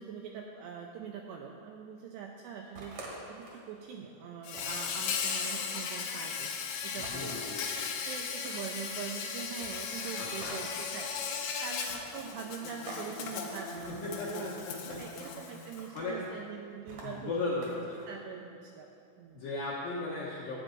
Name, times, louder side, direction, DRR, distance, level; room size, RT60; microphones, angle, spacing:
voice 1, 0.0-6.5 6.8-14.6 14.8-19.4, right 7 dB, 85° right, 1 dB, 2.5 m, -43 dB
sound 1, 2.7-3.7 4.1-4.2 4.5-5.7 7.0-7.6 8.2-8.8 9.6-10.9 11.9-13.1 13.3-13.9 14.9-15.4 15.7-16.2 16.9-18.1, right 2 dB, 65° right, 1.8 m, -48 dB
Insect, 4.4-15.9, left 6 dB, 90° left, 2.2 m, -37 dB
voice 2, 7.0-7.9 10.2-10.6 14.0-15.0 15.9-16.2 17.0-18.0 19.3-20.6, left 2 dB, 75° left, -7 dB, 2.0 m, -36 dB
11.0 x 8.8 x 3.8 m, 2.6 s
omnidirectional pair, 5.4 m